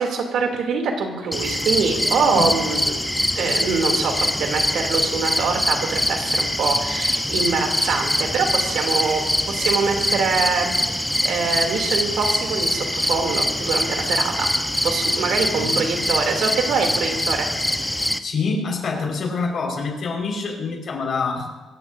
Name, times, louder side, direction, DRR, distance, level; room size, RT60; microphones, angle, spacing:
voice 1, 0.0-3.0 3.3-14.5 14.8-17.5, right 4 dB, 75° right, 2 dB, 2.8 m, -24 dB
sound 1, 1.3-18.2, left 1 dB, 5° left, 0.9 m, -23 dB
voice 2, 15.5-15.8 18.2-21.5, left 4 dB, 55° left, 0 dB, 4.8 m, -26 dB
26.0 x 14.5 x 2.7 m, 1.2 s
cardioid pair, 90°, 0 cm